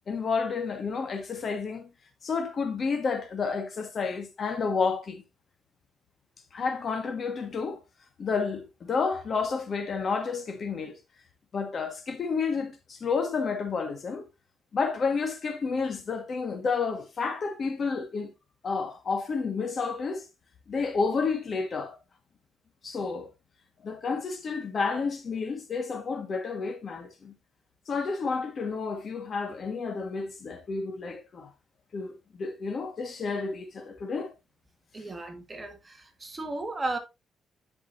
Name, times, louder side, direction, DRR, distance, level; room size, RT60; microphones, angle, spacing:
voice 1, 0.1-1.9 2.2-5.2 6.5-7.8 8.2-11.0 11.5-14.2 14.7-18.3 18.6-20.3 20.7-22.0 22.8-23.3 23.8-27.3 27.9-31.5 31.9-34.3, left 5 dB, 45° left, 1.5 m, -30 dB
voice 2, 34.9-37.0, right 2 dB, 25° right, 1.6 m, -35 dB
10.5 x 5.3 x 2.6 m
cardioid pair, 120°, 0 cm